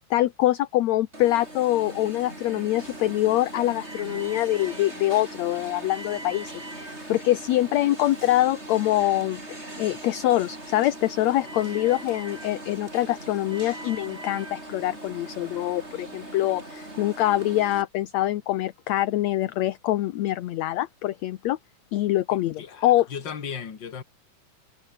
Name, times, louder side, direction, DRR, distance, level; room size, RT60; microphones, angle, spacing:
voice 1, 0.1-6.5 6.8-21.6 21.9-23.1, left 14 dB, 70° left, 1.9 m, -24 dB
Alarm, 1.1-17.8, right 1 dB, 20° right, 6.8 m, -40 dB
voice 2, 22.6-24.0, left 7 dB, 35° left, 2.6 m, -36 dB
omnidirectional pair, 3.8 m